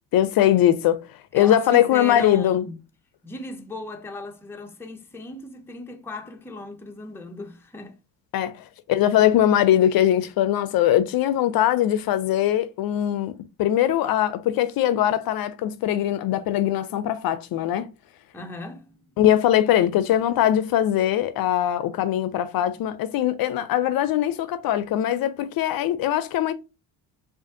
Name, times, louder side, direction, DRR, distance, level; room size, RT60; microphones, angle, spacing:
voice 1, 0.1-1.0 1.3-2.6 8.3-17.9 19.2-26.5, left 11 dB, 55° left, 0.5 m, -21 dB
voice 2, 1.3-2.8 3.2-8.0 18.3-19.0, left 2 dB, 5° left, 0.5 m, -36 dB
4.9 x 2.5 x 2.6 m
cardioid pair, 115°, 42 cm